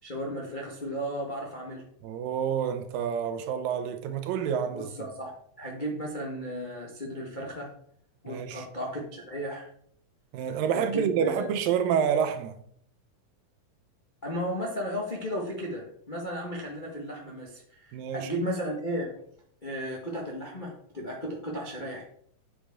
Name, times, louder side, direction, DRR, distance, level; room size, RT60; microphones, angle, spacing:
voice 1, 0.0-1.9 4.7-7.7 8.2-9.7 10.7-11.5 14.2-19.3 19.6-22.1, equal, 50° left, 0.5 m, -35 dB
voice 2, 2.0-4.9 8.3-8.7 10.3-12.6 17.9-18.3, right 8 dB, 80° right, 2.5 m, -28 dB
9.0 x 7.8 x 3.7 m
omnidirectional pair, 4.0 m